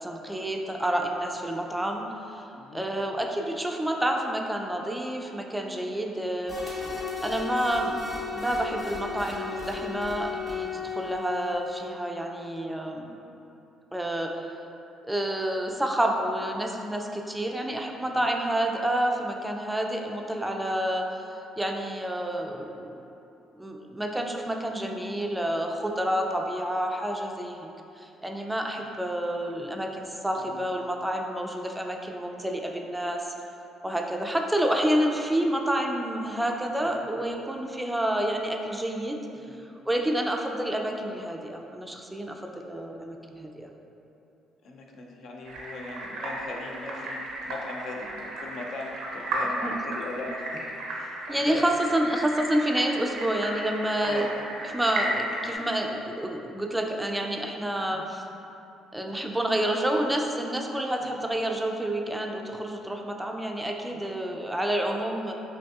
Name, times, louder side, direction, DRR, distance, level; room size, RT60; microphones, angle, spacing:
voice 1, 0.0-2.4 2.7-6.8 7.2-8.1 8.3-13.2 13.9-14.4 15.1-21.3 21.6-23.0 23.6-27.7 28.0-33.3 33.8-39.2 39.9-43.7 49.6-49.7 51.3-54.3 54.7-58.2 58.9-65.3, right 1 dB, 10° right, 2 dB, 0.3 m, -29 dB
voice 2, 2.5-2.8 18.1-18.3 30.4-30.6 36.8-37.0 39.3-39.6 44.6-51.6 54.0-54.3 57.9-58.0 61.0-61.1 63.9-64.1, left 2 dB, 65° left, 0 dB, 0.4 m, -39 dB
sound 1, 6.5-11.9, left 5 dB, 35° left, 1.2 m, -35 dB
sound 2, 45.5-55.5, right 1 dB, 80° right, 0.6 m, -34 dB
5.1 x 2.6 x 2.4 m, 2.8 s
supercardioid pair, 75°, 0 cm